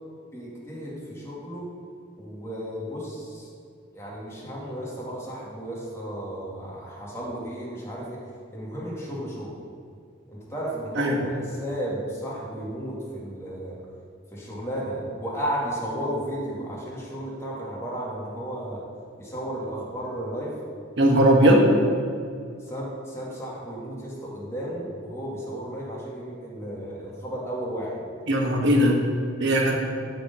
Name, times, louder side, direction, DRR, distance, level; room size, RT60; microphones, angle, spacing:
voice 1, 0.3-1.7 2.2-3.5 3.9-8.2 8.5-9.5 10.3-13.8 14.3-18.8 19.2-20.6 22.6-28.0, equal, 15° left, -6 dB, 2.3 m, -33 dB
voice 2, 21.0-21.6 28.3-29.0 29.4-29.8, right 1 dB, 65° right, 0 dB, 1.5 m, -18 dB
12.0 x 4.6 x 5.5 m, 2.3 s
head